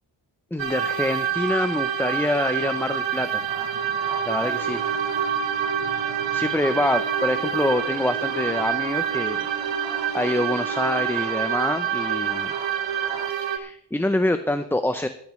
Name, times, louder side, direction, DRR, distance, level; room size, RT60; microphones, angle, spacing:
voice 1, 0.5-3.5 4.3-4.8 6.3-9.6 10.1-12.6 13.3-15.1, left 1 dB, 5° left, 8 dB, 0.5 m, -26 dB
sound 1, 0.6-13.6, right 8 dB, 80° right, 1.1 m, -27 dB
sound 2, 3.5-13.3, right 2 dB, 10° right, 0.9 m, -41 dB
sound 3, 4.4-11.1, right 3 dB, 30° right, 3.7 m, -40 dB
18.0 x 10.5 x 3.2 m, 0.69 s
wide cardioid pair, 115°, 44 cm